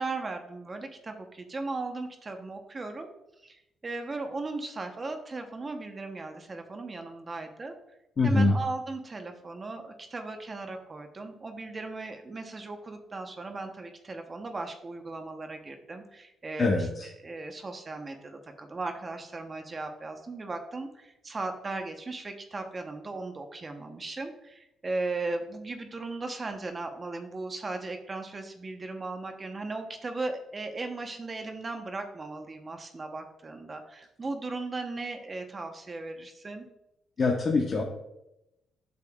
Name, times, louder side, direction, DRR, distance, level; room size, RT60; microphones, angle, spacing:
voice 1, 0.0-3.1 3.4-7.8 8.2-36.7, right 3 dB, 30° right, 5 dB, 0.8 m, -37 dB
voice 2, 8.2-8.5 16.6-16.9 37.2-37.8, left 3 dB, 45° left, -1 dB, 0.9 m, -23 dB
8.3 x 6.7 x 2.3 m, 0.87 s
cardioid pair, 90°, 0 cm